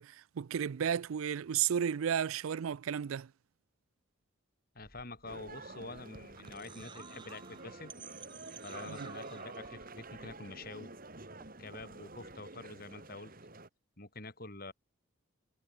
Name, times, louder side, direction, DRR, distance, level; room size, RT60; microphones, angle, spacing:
voice 1, 0.0-3.3 8.9-9.1, right 8 dB, 80° right, 0.4 m, -33 dB
voice 2, 4.7-7.9 8.6-10.9 11.6-13.3 14.0-14.7, left 2 dB, 45° left, 3.9 m, -47 dB
sound 1, 4.8-11.0 11.3-12.3, right 5 dB, 20° right, 1.0 m, -54 dB
sound 2, 5.3-13.7, right 2 dB, 45° right, 2.8 m, -49 dB
head